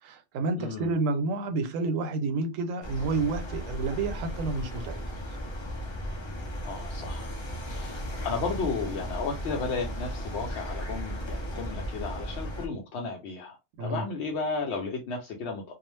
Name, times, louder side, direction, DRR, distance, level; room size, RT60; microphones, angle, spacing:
voice 1, 0.0-5.0 5.3-5.4 13.8-14.0, right 3 dB, 85° right, 1.0 m, -30 dB
voice 2, 0.6-1.0 6.6-7.3 7.7-15.7, left 4 dB, 70° left, 0.8 m, -34 dB
sound 1, 2.8-12.7, equal, 50° left, 0.3 m, -36 dB
2.3 x 2.0 x 3.1 m
omnidirectional pair, 1.3 m